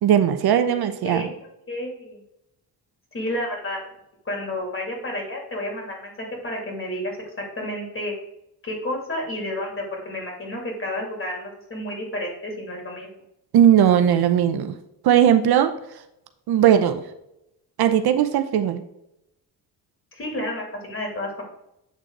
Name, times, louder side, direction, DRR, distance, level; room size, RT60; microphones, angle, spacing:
voice 1, 0.0-1.3 13.5-14.7 15.0-15.7 16.5-17.0 17.8-18.8, right 9 dB, 70° right, 9 dB, 0.7 m, -18 dB
voice 2, 1.7-2.2 3.1-3.8 4.2-7.1 7.4-8.1 8.6-13.1 20.1-21.4, left 1 dB, 35° left, 0 dB, 2.7 m, -31 dB
8.1 x 3.8 x 4.6 m, 0.85 s
cardioid pair, 100°, 39 cm